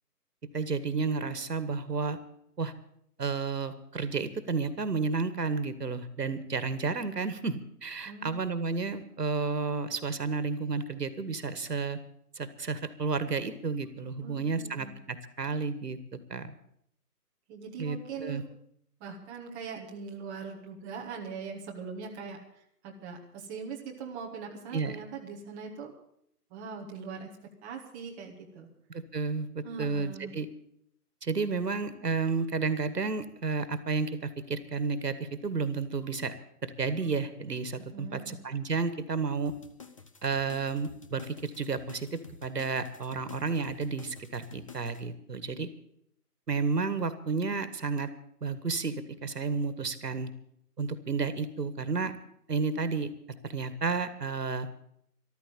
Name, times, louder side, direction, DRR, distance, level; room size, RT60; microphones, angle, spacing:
voice 1, 0.5-2.2 2.6-2.7 3.2-12.0 12.4-16.5 17.8-18.4 24.7-24.9 28.9-30.5 31.2-36.3 36.6-39.5 40.2-45.7 46.5-48.1 48.4-50.3 50.8-52.1 52.5-53.1 53.4-54.7, right 4 dB, 80° right, 13 dB, 1.8 m, -31 dB
voice 2, 8.0-8.4 14.2-14.9 17.5-18.4 19.0-22.4 22.8-25.9 26.5-28.7 29.6-30.3 37.8-38.3, right 5 dB, 10° right, -2 dB, 0.8 m, -41 dB
sound 1, 39.5-45.0, left 5 dB, 20° left, 0.6 m, -50 dB
13.5 x 12.5 x 6.8 m, 0.70 s
figure-of-eight pair, 145°, 48 cm